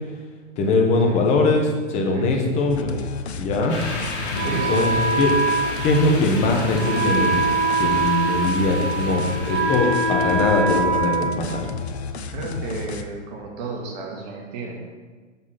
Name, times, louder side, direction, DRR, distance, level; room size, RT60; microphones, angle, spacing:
voice 1, 0.6-2.9 3.3-3.8 4.5-5.3 5.8-11.7, left 3 dB, 20° left, 1 dB, 0.8 m, -21 dB
voice 2, 2.1-2.6 4.4-5.1 12.3-14.8, right 4 dB, 35° right, 0 dB, 1.4 m, -33 dB
sound 1, 2.7-8.1 8.4-13.0, left 5 dB, 60° left, 0.6 m, -33 dB
sound 2, 3.7-10.5, left 3 dB, 45° left, 1.8 m, -33 dB
Wind instrument woodwind instrument, 4.3-12.1, right 3 dB, 65° right, 1.3 m, -24 dB
6.9 x 3.6 x 5.6 m, 1.4 s
figure-of-eight pair, 115°, 37 cm